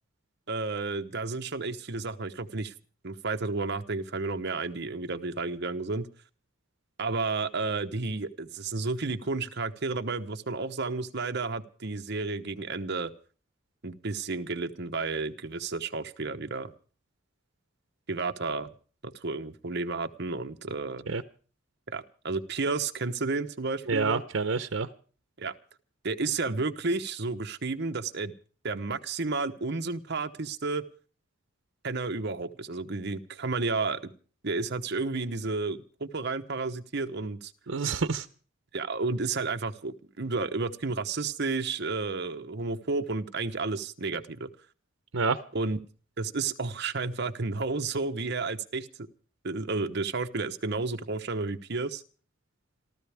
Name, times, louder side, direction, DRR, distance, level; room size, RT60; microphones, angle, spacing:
voice 1, 0.5-2.7 3.0-6.1 7.0-13.1 13.8-16.7 18.1-18.7 19.0-21.0 21.9-24.2 25.4-25.5 26.0-28.3 28.6-30.8 31.8-34.1 34.4-37.5 38.7-44.5 45.5-45.8 46.2-49.1 49.4-52.0, right 3 dB, 60° right, 7 dB, 1.0 m, -32 dB
voice 2, 23.9-24.9 37.7-38.3 45.1-45.4, right 4 dB, 90° right, 11 dB, 0.8 m, -28 dB
27.0 x 14.0 x 3.5 m, 0.40 s
head